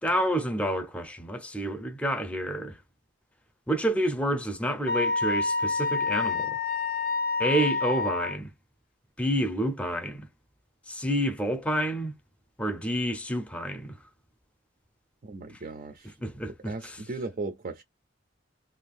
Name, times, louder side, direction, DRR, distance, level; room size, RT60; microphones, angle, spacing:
voice 1, 0.0-2.8 3.7-6.6 7.4-8.5 9.2-10.3 10.9-12.1 12.6-14.0 16.2-16.7, right 1 dB, 5° left, 0.6 m, -29 dB
Wind instrument woodwind instrument, 4.9-8.3, left 4 dB, 50° left, 0.6 m, -28 dB
voice 2, 15.2-16.2 16.6-17.8, right 3 dB, 40° right, 0.4 m, -37 dB
2.6 x 2.4 x 3.4 m
head